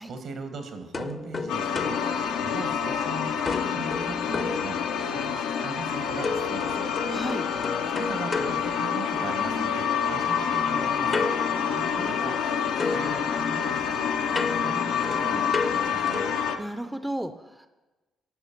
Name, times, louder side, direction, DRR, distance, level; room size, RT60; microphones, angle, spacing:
voice 1, 0.0-2.0 2.4-3.3 3.6-6.9 7.9-11.3 12.0-16.3, right 4 dB, 65° right, 7 dB, 1.3 m, -40 dB
sound 1, 0.9-3.0 3.5-5.3 6.2-9.5 11.1-12.5 12.8-16.5, left 3 dB, 35° left, 0.6 m, -34 dB
sound 2, 1.5-16.6, left 7 dB, 90° left, 0.6 m, -27 dB
voice 2, 7.1-7.5 11.7-12.5 16.6-17.7, right 1 dB, 5° right, 9 dB, 0.5 m, -35 dB
11.0 x 4.4 x 5.7 m, 1.1 s
cardioid pair, 90°, 0 cm